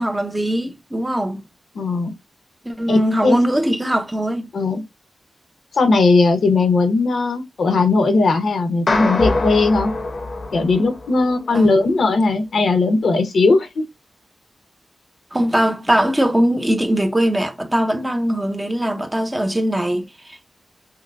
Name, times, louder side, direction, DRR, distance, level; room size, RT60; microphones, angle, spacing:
voice 1, 0.0-1.4 2.6-4.5 11.5-11.9 15.3-20.5, right 1 dB, 10° right, 0.7 m, -21 dB
voice 2, 1.7-2.1 2.9-3.3 4.5-4.8 5.7-9.9 10.5-13.8, left 3 dB, 85° left, 1.0 m, -18 dB
sound 1, 8.9-11.3, left 2 dB, 50° left, 0.8 m, -23 dB
5.7 x 2.2 x 2.6 m
wide cardioid pair, 135°, 0 cm